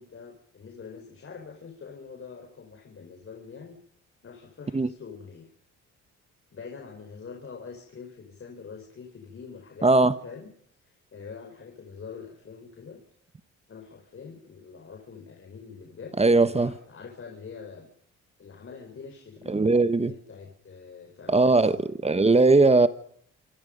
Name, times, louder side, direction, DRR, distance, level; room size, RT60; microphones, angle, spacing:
voice 1, 0.0-3.8 4.2-5.5 6.5-10.5 10.8-13.0 13.7-17.9 18.4-21.9, left 5 dB, 45° left, 5.1 m, -44 dB
voice 2, 9.8-10.1 16.2-16.7 19.5-20.1 21.3-21.8 22.0-22.9, right 3 dB, 20° right, 1.3 m, -19 dB
27.0 x 26.5 x 5.4 m
cardioid pair, 90°, 30 cm